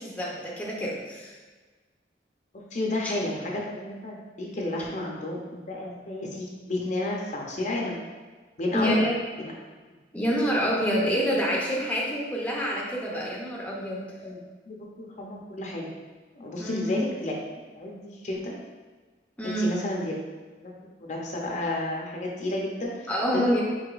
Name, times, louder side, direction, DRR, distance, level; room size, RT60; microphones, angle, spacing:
voice 1, 0.0-1.4 8.7-9.2 10.1-14.0 16.6-17.0 19.4-19.7 23.1-23.6, equal, 10° left, -3 dB, 0.6 m, -27 dB
voice 2, 2.5-8.0 8.6-9.1 9.4-9.5 14.0-14.4 14.7-15.9 16.4-17.4 17.7-18.5 19.4-20.1 20.6-20.7 21.0-22.9 23.3-23.6, left 1 dB, 45° left, -1 dB, 0.6 m, -31 dB
4.8 x 4.1 x 2.4 m, 1.4 s
head